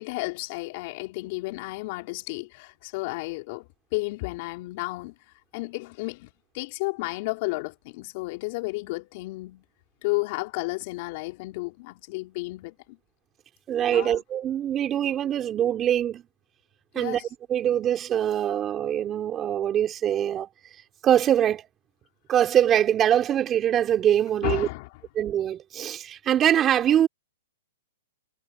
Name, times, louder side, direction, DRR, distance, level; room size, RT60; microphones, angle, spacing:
voice 1, 0.0-5.1 5.5-9.6 10.0-13.0 13.9-14.2 16.9-17.3 24.4-24.9, left 24 dB, 45° left, 4.0 m, -32 dB
voice 2, 13.7-16.2 16.9-17.2 17.5-20.5 21.0-21.7 22.3-24.7 25.2-27.1, right 10 dB, 25° right, 4.1 m, -23 dB
hypercardioid pair, 130°, 0 cm